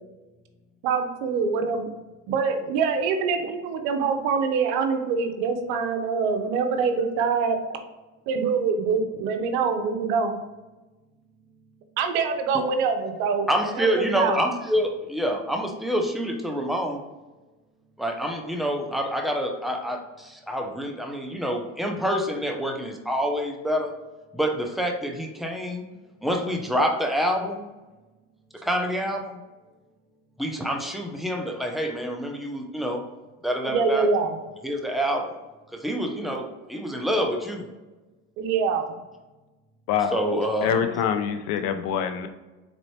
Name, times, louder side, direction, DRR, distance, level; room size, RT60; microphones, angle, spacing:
voice 1, 0.8-1.9 2.3-7.6 8.3-10.4 12.0-13.5 13.8-14.4 33.6-34.4 38.4-39.0, right 5 dB, 80° right, 6 dB, 0.7 m, -24 dB
voice 2, 13.5-17.1 18.0-23.9 24.3-25.9 26.2-27.7 28.6-29.4 30.4-33.1 33.4-34.1 34.6-35.3 35.7-37.6 40.1-40.8, equal, ahead, 2 dB, 0.7 m, -27 dB
voice 3, 40.6-42.3, left 8 dB, 70° left, 8 dB, 0.6 m, -25 dB
3.9 x 3.1 x 3.1 m, 1.1 s
supercardioid pair, 85°, 35 cm